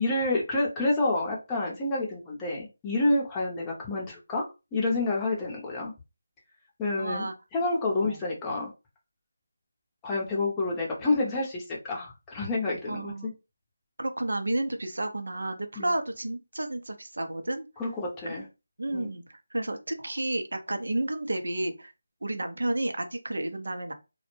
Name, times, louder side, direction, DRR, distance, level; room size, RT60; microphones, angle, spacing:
voice 1, 0.0-4.4 4.7-5.9 6.8-7.3 7.5-8.7 10.0-13.3 15.8-15.9 17.8-18.4 18.9-19.1, left 2 dB, 15° left, -3 dB, 0.6 m, -28 dB
voice 2, 7.0-7.3 7.9-8.2 12.9-13.3 14.0-17.7 18.3-18.4 18.8-21.9 22.2-23.9, right 1 dB, 80° right, 6 dB, 0.5 m, -31 dB
2.1 x 2.1 x 3.0 m, 0.27 s
figure-of-eight pair, 165°, 0 cm